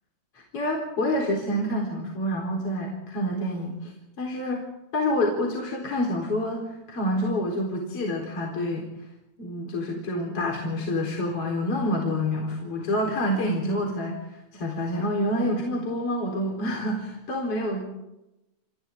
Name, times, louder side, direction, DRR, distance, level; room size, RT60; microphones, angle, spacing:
voice 1, 0.3-3.9 4.2-4.6 4.9-8.9 9.4-17.8, left 1 dB, 35° left, 0 dB, 4.8 m, -27 dB
30.0 x 26.0 x 3.8 m, 0.93 s
omnidirectional pair, 4.9 m